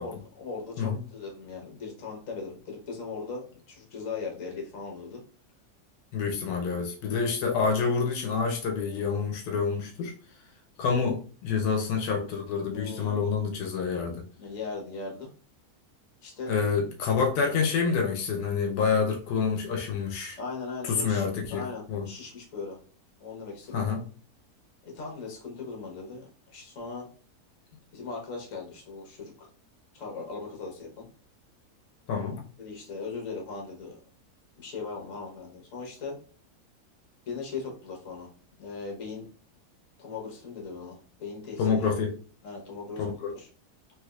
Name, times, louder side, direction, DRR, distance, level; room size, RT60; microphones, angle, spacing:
voice 1, 0.0-5.2 12.7-13.2 14.4-15.3 16.2-16.6 20.4-22.8 23.2-23.9 24.8-27.1 27.9-29.5 29.9-31.1 32.6-34.0 34.6-36.2 37.3-38.3 38.6-39.3 40.0-41.9 42.4-43.5, left 4 dB, 60° left, 0 dB, 1.3 m, -39 dB
voice 2, 6.1-10.1 10.8-14.2 16.5-20.4 20.8-22.1 23.7-24.0 32.1-32.4 41.6-42.2 43.0-43.3, left 5 dB, 90° left, 2 dB, 1.1 m, -27 dB
3.3 x 2.9 x 2.3 m, 0.40 s
omnidirectional pair, 1.6 m